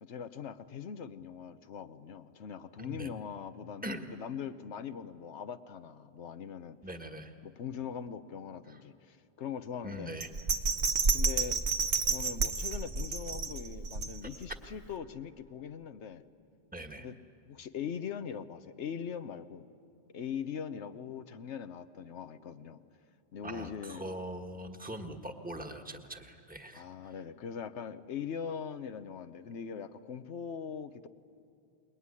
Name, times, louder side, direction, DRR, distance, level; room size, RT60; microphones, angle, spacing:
voice 1, 0.0-6.8 7.4-10.1 11.1-11.6 12.1-16.2 17.0-17.1 17.5-19.7 20.1-22.8 23.3-24.0 26.7-31.1, left 7 dB, 90° left, 10 dB, 1.2 m, -41 dB
voice 2, 2.8-3.1 3.8-4.1 6.8-7.3 8.7-8.8 9.8-10.3 14.2-14.3 16.7-17.1 23.4-27.1, right 1 dB, 10° right, 5 dB, 1.4 m, -42 dB
Bell, 10.2-14.5 15.0-15.1, right 4 dB, 80° right, 1.5 m, -30 dB
26.5 x 22.0 x 9.8 m, 2.6 s
omnidirectional pair, 1.1 m